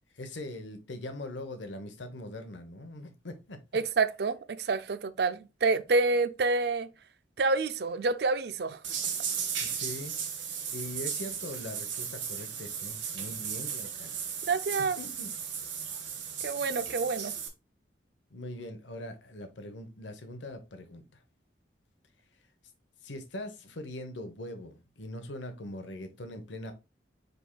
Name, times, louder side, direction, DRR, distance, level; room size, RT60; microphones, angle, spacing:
voice 1, 0.1-3.6 9.6-10.5 10.7-14.2 15.0-15.3 18.3-21.0 23.0-26.7, left 1 dB, 85° left, 0.9 m, -41 dB
voice 2, 3.7-6.9 7.4-8.8 14.5-15.0 16.4-17.3, right 3 dB, 60° right, 0.4 m, -28 dB
sound 1, 8.8-17.5, right 7 dB, 90° right, 1.0 m, -36 dB
5.3 x 4.3 x 2.2 m
head